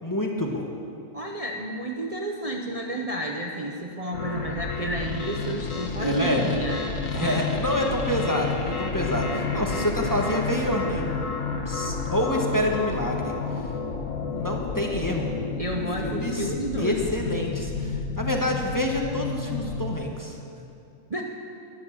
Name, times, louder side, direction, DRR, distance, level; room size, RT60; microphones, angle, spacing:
voice 1, 0.0-0.7 6.0-6.6 7.1-11.2 11.7-13.3 14.3-15.3 16.0-16.5 16.8-20.4, left 1 dB, 15° left, 0 dB, 1.3 m, -27 dB
voice 2, 1.1-7.5 15.6-17.1 21.1-21.2, right 1 dB, 30° right, 0 dB, 0.9 m, -31 dB
sound 1, 4.1-19.9, left 4 dB, 80° left, 1.6 m, -30 dB
13.0 x 11.0 x 7.2 m, 2.6 s
omnidirectional pair, 1.3 m